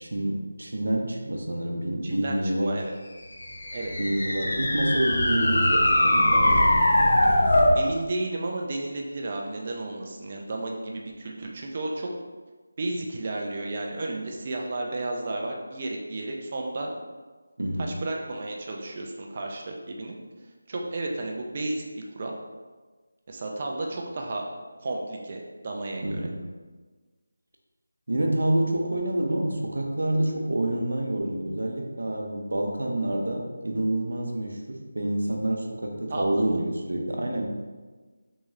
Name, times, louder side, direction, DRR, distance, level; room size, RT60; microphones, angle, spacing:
voice 1, 0.0-2.8 4.0-6.7 17.6-18.0 26.0-26.4 28.1-37.5, right 1 dB, 80° right, 1 dB, 0.6 m, -27 dB
voice 2, 2.0-2.9 3.7-3.9 7.8-12.1 12.8-16.9 17.8-20.2 20.7-21.8 22.2-22.3 23.3-24.4 24.8-26.3 36.1-36.5, right 2 dB, 30° right, 0 dB, 0.3 m, -33 dB
sound 1, 3.4-7.8, left 1 dB, 60° left, 0.5 m, -21 dB
3.6 x 2.6 x 3.1 m, 1.3 s
figure-of-eight pair, 170°, 0 cm